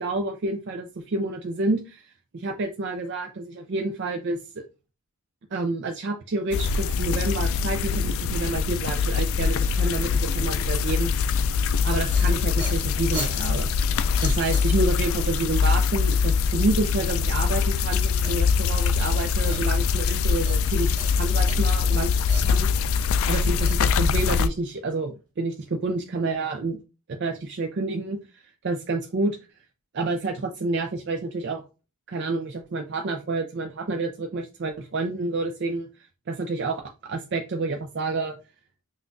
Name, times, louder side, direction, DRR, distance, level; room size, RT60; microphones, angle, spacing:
voice 1, 0.0-4.4 5.5-11.5 11.8-22.2 22.4-26.8 27.1-29.4 29.9-31.6 32.1-35.9 36.3-38.4, right 3 dB, 50° right, 4 dB, 0.4 m, -29 dB
sound 1, 6.5-24.5, left 5 dB, 65° left, 0.3 m, -23 dB
sound 2, 12.0-15.2 18.2-20.1 20.4-21.9 22.2-24.5, right 2 dB, 20° right, 1.4 m, -41 dB
5.6 x 2.4 x 2.5 m, 0.31 s
head